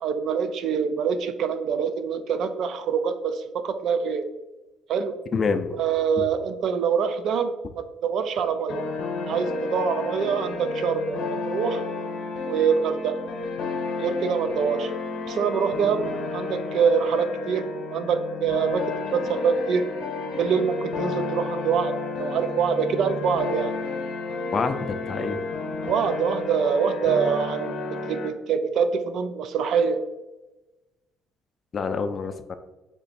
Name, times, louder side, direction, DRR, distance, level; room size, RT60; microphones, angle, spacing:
voice 1, 0.0-4.2 4.9-5.1 5.7-8.8 9.3-11.8 12.4-13.1 14.0-14.9 15.3-16.0 16.3-18.8 19.1-19.8 20.4-21.9 22.2-23.7 25.9-27.8 28.1-30.0, right 6 dB, 65° right, 9 dB, 0.4 m, -25 dB
voice 2, 5.3-5.8 6.2-6.3 24.5-24.8 25.1-25.4 31.7-32.5, left 5 dB, 35° left, 9 dB, 0.3 m, -26 dB
sound 1, 8.7-28.3, left 3 dB, 70° left, 0.8 m, -31 dB
3.2 x 3.0 x 4.2 m, 1.1 s
cardioid pair, 120°, 0 cm